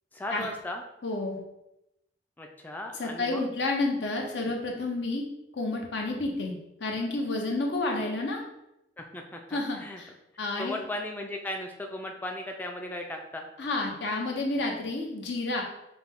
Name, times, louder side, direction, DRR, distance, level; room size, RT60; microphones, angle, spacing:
voice 1, 0.1-0.8 2.4-3.5 9.0-10.0 10.6-13.4, left 1 dB, 10° left, 2 dB, 0.3 m, -37 dB
voice 2, 1.0-1.4 2.9-5.2 5.5-6.5 6.8-8.4 9.5-10.1 10.4-10.8 13.6-15.6, left 2 dB, 80° left, 1 dB, 0.8 m, -30 dB
5.7 x 2.1 x 3.6 m, 0.87 s
head